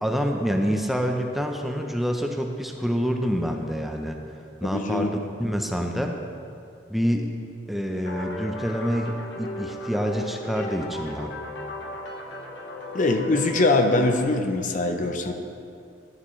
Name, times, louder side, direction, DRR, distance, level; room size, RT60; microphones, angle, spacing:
voice 1, 0.0-4.2 4.6-5.1 5.4-6.2 6.9-7.3 7.7-11.3, equal, ahead, 2 dB, 0.6 m, -27 dB
voice 2, 4.6-5.1 12.9-15.3, left 2 dB, 45° left, 5 dB, 0.7 m, -22 dB
sound 1, 8.0-14.2, left 1 dB, 70° left, 1.3 m, -36 dB
13.0 x 10.0 x 3.2 m, 2.5 s
head